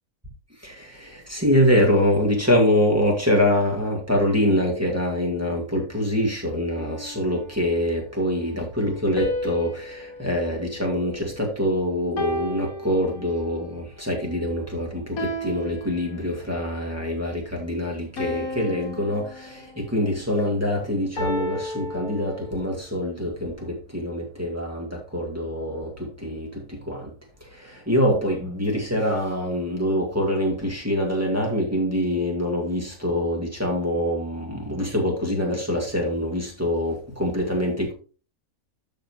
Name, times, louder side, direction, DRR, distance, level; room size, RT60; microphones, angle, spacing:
voice 1, 0.6-27.1 27.4-37.9, equal, 10° right, 2.2 m, -25 dB
sound 1, 6.8-8.0 9.2-11.6 12.2-13.6 15.2-16.6 18.2-20.0 21.2-22.8, left 1 dB, 75° left, 2.1 m, -33 dB
12.5 x 5.2 x 3.1 m
omnidirectional pair, 1.5 m